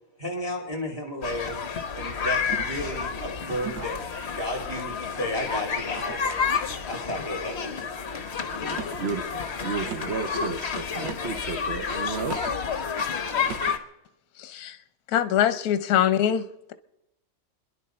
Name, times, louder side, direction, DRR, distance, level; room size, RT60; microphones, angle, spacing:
voice 1, 0.2-1.6 1.9-4.0 4.3-6.5 6.9-7.8 8.3-8.4, left 1 dB, 15° right, 1.9 m, -33 dB
sound 1, 1.2-13.8, left 6 dB, 45° left, 1.0 m, -30 dB
sound 2, 2.5-3.0 3.6-4.1 4.7-5.2 6.0-6.4 7.0-7.4 8.6-9.1 9.8-10.2 11.0-11.4 12.2-12.6 13.4-13.8, right 9 dB, 75° right, 1.4 m, -40 dB
voice 2, 9.0-12.6, right 5 dB, 45° right, 0.8 m, -33 dB
voice 3, 14.4-14.8 15.1-16.7, left 10 dB, 60° left, 1.2 m, -23 dB
29.5 x 11.0 x 4.3 m
omnidirectional pair, 2.0 m